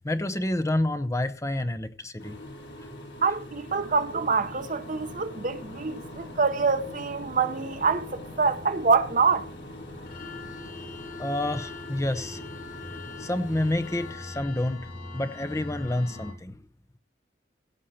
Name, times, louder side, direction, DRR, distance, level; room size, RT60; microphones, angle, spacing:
voice 1, 0.0-2.4 2.8-2.9 11.2-12.5 12.9-16.6, left 1 dB, 15° left, 0.8 m, -29 dB
sound 1, 2.2-14.1, left 1 dB, 85° left, 3.6 m, -44 dB
voice 2, 3.2-9.5, right 4 dB, 45° right, 1.0 m, -25 dB
sound 2, 3.7-16.3, left 3 dB, 50° left, 3.3 m, -43 dB
16.5 x 7.3 x 4.3 m
head